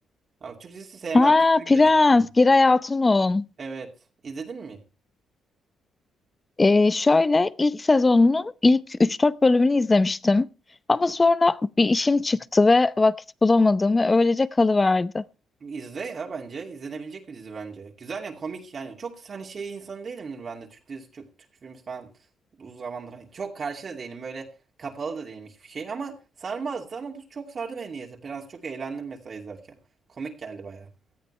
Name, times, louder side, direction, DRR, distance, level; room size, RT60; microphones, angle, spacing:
voice 1, 0.4-1.8 3.6-3.9 4.2-4.8 15.6-21.3 21.6-22.1 22.6-24.5 24.8-29.8 30.1-30.9, right 5 dB, 45° right, 2.5 m, -36 dB
voice 2, 1.1-3.5 6.6-10.5 10.9-13.1 13.4-15.2, left 3 dB, 25° left, 0.7 m, -19 dB
18.0 x 13.5 x 3.3 m
cardioid pair, 90°, 0 cm